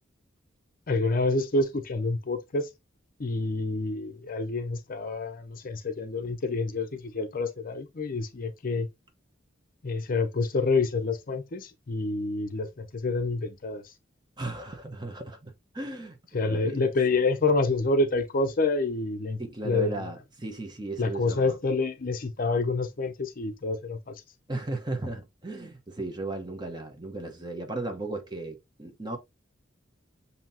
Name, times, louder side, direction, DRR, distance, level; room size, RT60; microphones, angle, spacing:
voice 1, 0.9-2.7 3.2-8.9 9.8-13.9 16.3-19.4 19.6-20.1 21.0-24.2, left 3 dB, 45° left, 0.6 m, -28 dB
voice 2, 14.4-16.8 19.4-21.6 24.5-29.2, right 2 dB, 20° right, 0.9 m, -36 dB
7.3 x 2.8 x 2.6 m
head